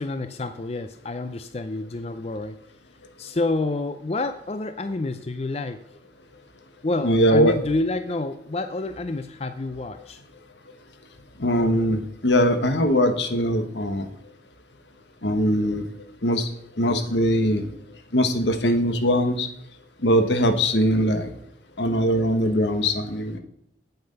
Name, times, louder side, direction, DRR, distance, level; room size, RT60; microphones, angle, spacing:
voice 1, 0.0-2.6 3.2-5.8 6.8-10.2, left 2 dB, 35° left, 9 dB, 0.5 m, -28 dB
voice 2, 7.0-7.5 11.4-14.1 15.2-15.8 16.2-16.5 16.8-17.7 18.1-19.5 20.0-21.3 21.8-23.4, equal, 80° left, 7 dB, 1.3 m, -21 dB
8.8 x 7.9 x 5.3 m, 0.73 s
head